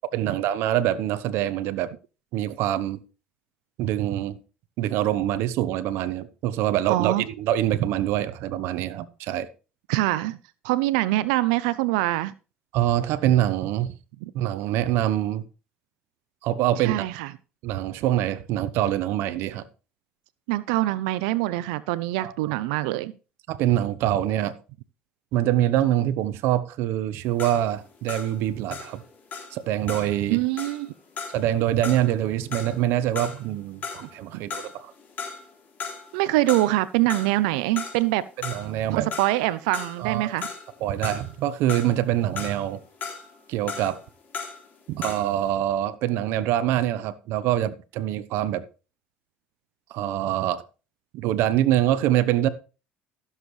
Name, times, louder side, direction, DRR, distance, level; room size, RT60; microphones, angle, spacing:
voice 1, 0.1-1.9 2.3-3.0 3.8-4.4 4.8-9.5 12.7-13.9 14.3-15.4 16.4-17.0 17.6-19.6 22.2-22.6 23.5-24.5 25.3-29.0 29.5-30.4 31.3-34.9 38.4-39.1 40.0-40.3 40.8-42.8 43.5-44.0 44.9-48.6 49.9-50.6 51.1-52.5, right 12 dB, 75° right, 0.9 m, -25 dB
voice 2, 6.9-7.2 9.9-10.4 10.6-12.3 14.2-14.3 16.7-17.3 20.5-23.1 30.3-30.9 34.3-34.4 36.1-38.3 38.9-40.5, right 17 dB, 90° right, 0.5 m, -24 dB
sound 1, 27.2-34.2 34.5-35.5 35.8-36.8 37.1-45.5, left 5 dB, 45° left, 3.2 m, -37 dB
15.0 x 7.3 x 3.2 m
supercardioid pair, 90°, 4 cm